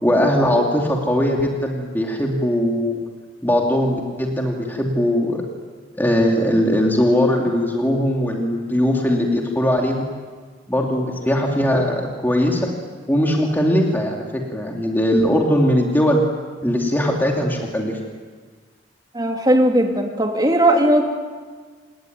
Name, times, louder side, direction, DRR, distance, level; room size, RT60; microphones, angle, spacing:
voice 1, 0.0-3.0 3.4-5.4 6.0-10.0 10.7-12.7 13.1-16.2 16.6-18.0, equal, 10° left, 0 dB, 2.8 m, -20 dB
voice 2, 19.1-21.0, right 1 dB, 20° right, 2 dB, 3.2 m, -17 dB
28.5 x 19.0 x 9.5 m, 1.5 s
head